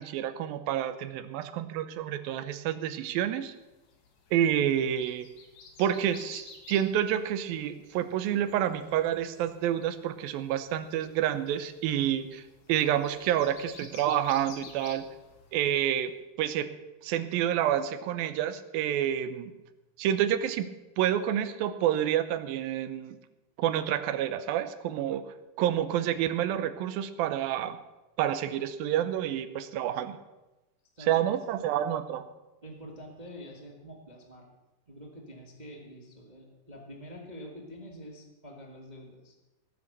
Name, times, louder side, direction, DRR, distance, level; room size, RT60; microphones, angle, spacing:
voice 1, 0.0-3.6 4.3-5.3 5.8-12.4 12.7-15.1 15.5-16.1 16.4-16.7 17.0-19.5 20.0-23.2 23.6-27.8 28.2-30.2 31.0-32.3, right 10 dB, 90° right, 11 dB, 2.6 m, -29 dB
sound 1, 3.6-16.1, left 5 dB, 85° left, 3.5 m, -53 dB
voice 2, 32.6-34.6 34.9-39.3, equal, 40° right, 0 dB, 0.6 m, -46 dB
17.5 x 8.0 x 6.7 m, 1.0 s
omnidirectional pair, 4.0 m